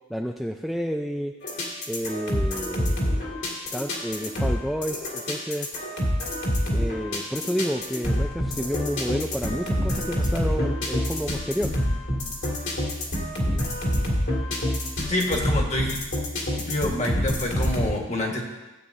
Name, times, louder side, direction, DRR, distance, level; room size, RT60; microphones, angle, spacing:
voice 1, 0.1-1.3 1.9-3.0 3.7-5.7 6.7-11.7, equal, ahead, 2 dB, 0.3 m, -30 dB
sound 1, 1.4-17.9, equal, 60° left, 2.3 m, -27 dB
voice 2, 15.1-15.9 16.6-18.4, left 1 dB, 35° left, 0 dB, 1.5 m, -27 dB
15.5 x 8.4 x 2.7 m, 1.1 s
head